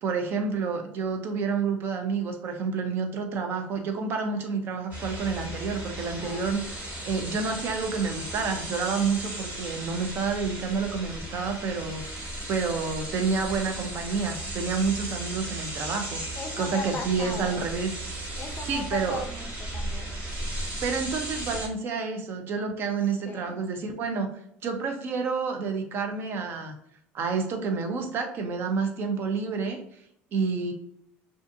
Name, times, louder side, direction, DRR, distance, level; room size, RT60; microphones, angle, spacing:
voice 1, 0.0-16.2 16.6-18.1 18.7-19.2 20.8-24.3 24.6-26.8 27.1-29.8 30.3-30.7, right 5 dB, 50° right, 5 dB, 0.6 m, -29 dB
sound 1, 4.9-21.7, right 1 dB, 35° right, 1.2 m, -36 dB
voice 2, 16.4-17.7 18.4-20.2 23.2-23.6, left 3 dB, 35° left, 5 dB, 0.4 m, -38 dB
2.5 x 2.5 x 2.5 m, 0.71 s
cardioid pair, 115°, 5 cm